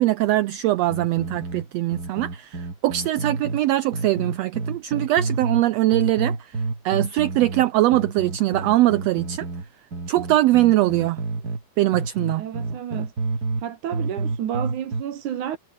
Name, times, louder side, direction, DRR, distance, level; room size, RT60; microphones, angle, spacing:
voice 1, 0.0-6.5 6.8-9.5 10.1-11.2 11.8-12.4, right 16 dB, 90° right, 1.4 m, -21 dB
sound 1, 0.9-3.6 3.9-5.7 5.9-11.6 11.9-13.7 13.9-15.0, right 3 dB, 30° right, 4.1 m, -29 dB
voice 2, 12.4-13.1 13.6-15.6, right 10 dB, 70° right, 3.1 m, -30 dB
omnidirectional pair, 3.6 m